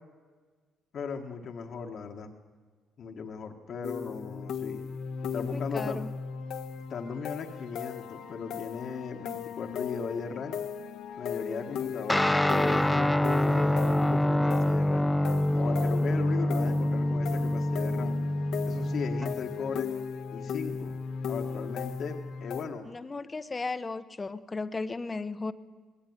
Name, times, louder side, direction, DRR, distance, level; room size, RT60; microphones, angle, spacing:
voice 1, 0.9-2.3 3.0-4.8 5.3-6.0 6.9-10.6 11.1-13.1 13.4-15.1 15.5-18.2 18.7-19.9 20.3-20.9 21.3-22.9, left 5 dB, 60° left, 3 dB, 1.6 m, -37 dB
sound 1, 3.8-22.6, left 6 dB, 75° left, 1.3 m, -37 dB
voice 2, 5.4-6.1 22.8-25.5, left 3 dB, 25° left, 12 dB, 1.1 m, -35 dB
Guitar, 12.1-19.8, left 1 dB, 10° left, 0.6 m, -26 dB
19.5 x 17.0 x 9.5 m, 1.5 s
supercardioid pair, 75°, 0 cm